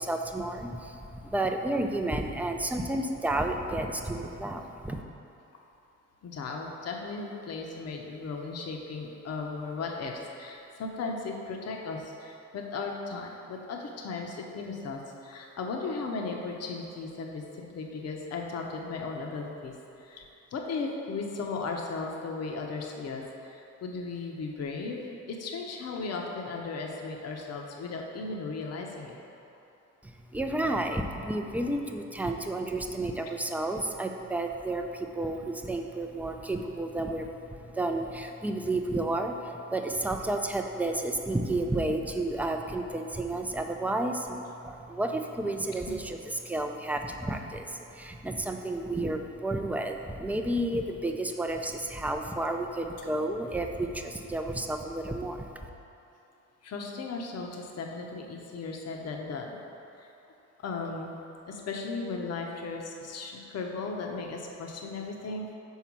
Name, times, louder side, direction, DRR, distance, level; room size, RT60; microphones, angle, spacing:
voice 1, 0.0-5.0 30.0-55.7, right 1 dB, 5° right, 4 dB, 0.4 m, -31 dB
voice 2, 6.2-29.2 45.9-46.0 56.6-59.6 60.0-60.1 60.6-61.1 61.5-65.5, left 4 dB, 55° left, 1 dB, 0.9 m, -36 dB
5.6 x 4.0 x 6.0 m, 2.9 s
cardioid pair, 90°, 30 cm